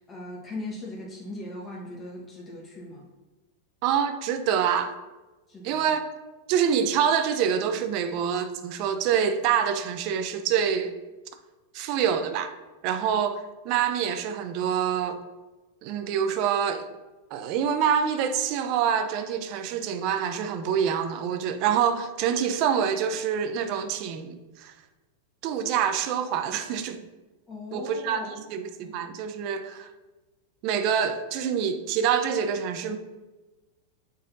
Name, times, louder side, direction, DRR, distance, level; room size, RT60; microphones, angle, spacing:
voice 1, 0.1-3.1 5.5-5.8 27.5-28.3, left 2 dB, 20° left, 1.2 m, -39 dB
voice 2, 3.8-5.0 5.6-6.0 6.5-10.9 11.7-12.5 12.8-15.2 15.8-16.9 17.3-24.7 25.4-27.1 27.7-29.9 30.6-33.0, right 8 dB, 50° right, 0.6 m, -26 dB
6.3 x 4.0 x 4.0 m
hypercardioid pair, 130°, 0 cm